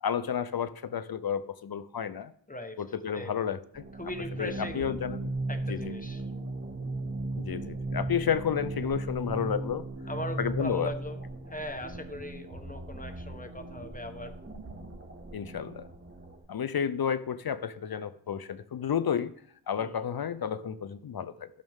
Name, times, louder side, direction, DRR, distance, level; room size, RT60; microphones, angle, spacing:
voice 1, 0.0-2.3 2.8-3.8 4.4-5.3 5.7-5.9 7.3-9.8 10.4-10.9 15.3-15.9 16.5-19.3 19.7-21.5, left 8 dB, 50° left, 15 dB, 0.5 m, -31 dB
voice 2, 2.5-2.8 3.1-3.4 4.0-5.0 5.5-6.2 10.1-11.2 11.5-14.3 19.8-20.0, left 1 dB, 15° left, 7 dB, 1.1 m, -39 dB
sound 1, 3.7-16.4, right 2 dB, 25° right, 1.5 m, -37 dB
12.5 x 6.4 x 3.6 m, 0.64 s
cardioid pair, 55°, 48 cm